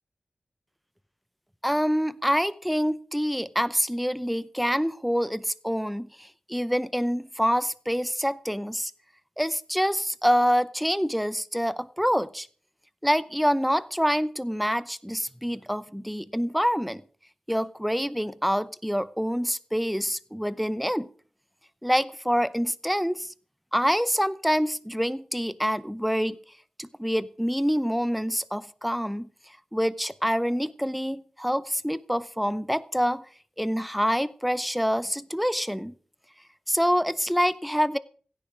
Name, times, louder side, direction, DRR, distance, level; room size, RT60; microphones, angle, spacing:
voice 1, 1.6-8.9 9.4-12.5 13.0-17.0 17.5-21.1 21.8-23.3 23.7-26.4 26.8-33.2 33.6-35.9 36.7-38.0, equal, ahead, 16 dB, 0.7 m, -26 dB
16.0 x 10.0 x 4.9 m, 0.43 s
wide cardioid pair, 80°, 2 cm